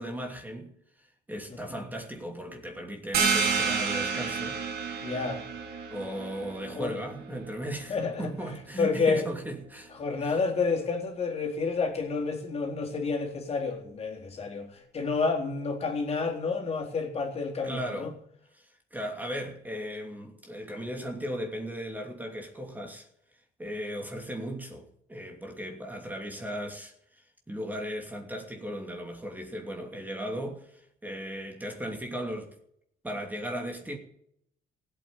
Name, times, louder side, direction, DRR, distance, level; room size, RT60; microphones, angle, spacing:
voice 1, 0.0-4.6 5.9-9.9 10.2-10.4 17.6-18.1 18.5-23.1 23.6-32.5 33.0-34.0, equal, 10° right, 2.8 m, -37 dB
voice 2, 1.5-1.8 5.0-5.4 6.8-7.0 7.9-9.2 10.0-18.1, left 4 dB, 35° left, 3.8 m, -30 dB
sound 1, 3.1-8.5, right 5 dB, 65° right, 3.9 m, -31 dB
16.0 x 8.7 x 9.1 m
cardioid pair, 110°, 17 cm